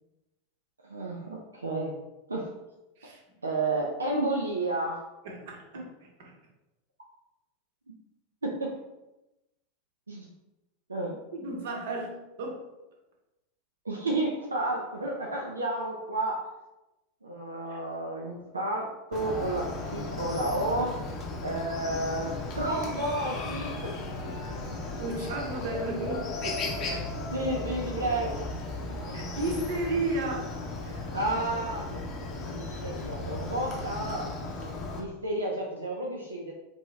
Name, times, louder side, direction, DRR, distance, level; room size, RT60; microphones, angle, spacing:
voice 1, 0.9-2.0 2.3-2.5 3.4-5.0 5.7-5.8 7.9-8.0 8.4-8.7 10.1-10.3 10.9-11.2 13.8-16.4 17.2-21.0 21.4-23.9 27.3-28.5 31.1-31.9 32.5-34.3 35.0-36.5, right 2 dB, 80° right, -1 dB, 0.5 m, -31 dB
voice 2, 5.2-5.8 6.2-6.3 11.3-12.6 17.7-17.8 24.2-24.3 24.9-27.4 29.1-30.5 30.8-31.1, right 2 dB, 60° right, -1 dB, 1.0 m, -34 dB
Chicken rooster, 19.1-35.0, left 3 dB, 40° left, 0.7 m, -36 dB
3.4 x 2.8 x 3.1 m, 0.98 s
figure-of-eight pair, 85°, 0 cm